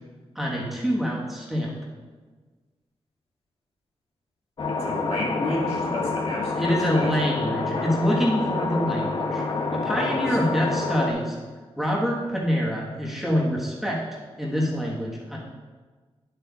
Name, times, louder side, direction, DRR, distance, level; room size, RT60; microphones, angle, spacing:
voice 1, 0.3-1.7 6.6-9.4 9.7-11.4 11.8-14.0 14.4-15.4, equal, ahead, -4 dB, 1.3 m, -25 dB
sound 1, 4.6-11.1, left 3 dB, 50° left, 0.7 m, -28 dB
voice 2, 4.7-7.1 9.9-10.4, left 1 dB, 70° left, -4 dB, 2.0 m, -31 dB
10.0 x 7.6 x 2.4 m, 1.4 s
wide cardioid pair, 110°, 11 cm